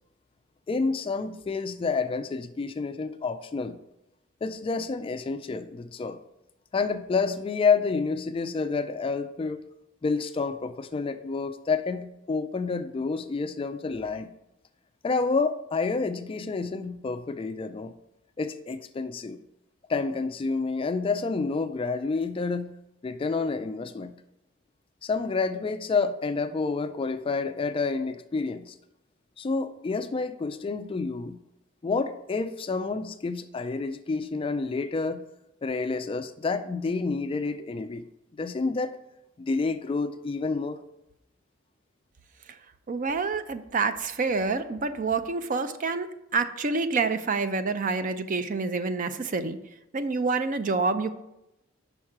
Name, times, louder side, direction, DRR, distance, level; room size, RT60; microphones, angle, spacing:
voice 1, 0.7-3.8 4.4-6.2 6.7-9.6 10.0-14.3 15.0-17.9 18.4-19.4 19.9-22.7 23.0-24.1 25.0-28.7 29.4-31.4 31.8-35.2 35.6-38.0 38.4-39.0 39.4-40.8, left 4 dB, 25° left, 10 dB, 0.3 m, -29 dB
voice 2, 42.9-49.6 49.9-51.1, right 4 dB, 40° right, 11 dB, 0.5 m, -27 dB
5.9 x 5.3 x 4.8 m, 0.86 s
head